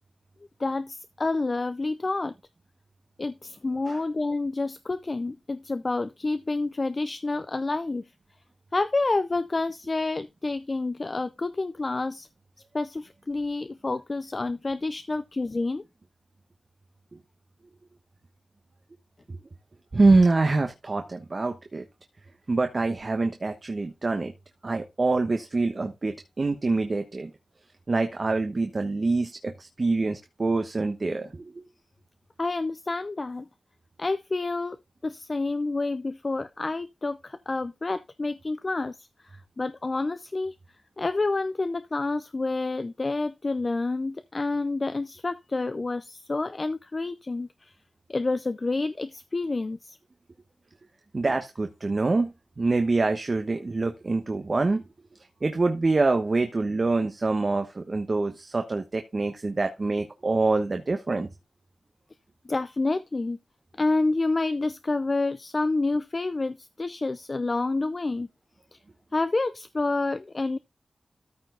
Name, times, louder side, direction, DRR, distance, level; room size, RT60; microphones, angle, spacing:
voice 1, 0.6-2.3 3.2-8.1 8.7-12.3 12.7-15.8 32.4-33.5 34.0-40.5 41.0-47.7 48.1-50.0 62.5-63.4 63.8-68.3 68.7-68.8 69.1-70.6, left 3 dB, 45° left, 0.5 m, -28 dB
voice 2, 19.9-21.9 22.5-24.3 24.6-27.3 27.9-31.6 51.1-54.8 55.4-61.3, right 3 dB, 45° right, 1.1 m, -25 dB
13.5 x 4.6 x 3.9 m
wide cardioid pair, 65°, 0 cm